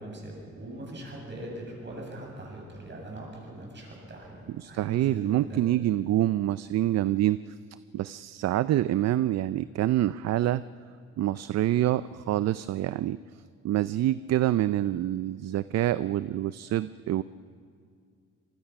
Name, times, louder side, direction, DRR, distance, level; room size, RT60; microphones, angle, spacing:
voice 1, 0.0-5.6, right 1 dB, 35° right, -1 dB, 7.7 m, -41 dB
voice 2, 4.6-7.5 7.9-10.6 11.2-13.2 13.6-17.2, right 13 dB, 60° right, 16 dB, 0.5 m, -26 dB
26.0 x 20.5 x 5.9 m, 2.2 s
cardioid pair, 90°, 30 cm